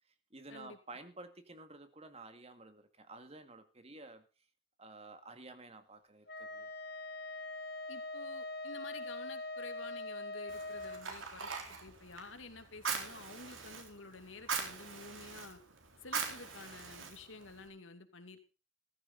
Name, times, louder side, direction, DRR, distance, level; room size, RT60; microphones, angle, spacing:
voice 1, 0.3-4.3 4.8-6.7, right 2 dB, 30° right, 9 dB, 2.0 m, -52 dB
Wind instrument woodwind instrument, 6.3-11.1, left 2 dB, 55° left, 1.4 m, -42 dB
voice 2, 7.9-15.6 16.0-18.5, left 3 dB, 80° left, 8 dB, 2.5 m, -51 dB
Fire, 10.5-17.7, right 5 dB, 90° right, 4.0 m, -42 dB
15.0 x 14.5 x 4.0 m, 0.32 s
head